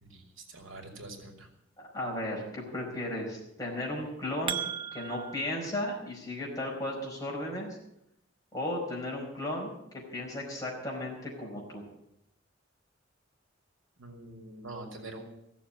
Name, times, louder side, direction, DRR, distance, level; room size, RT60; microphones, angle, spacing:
voice 1, 0.0-1.5 14.0-15.2, right 2 dB, 80° right, 3 dB, 2.7 m, -45 dB
voice 2, 1.8-7.8 8.5-11.8, left 1 dB, 20° left, -3 dB, 4.9 m, -35 dB
sound 1, 4.0-5.5, right 8 dB, 25° right, 0.7 m, -36 dB
16.0 x 7.2 x 9.5 m, 0.81 s
head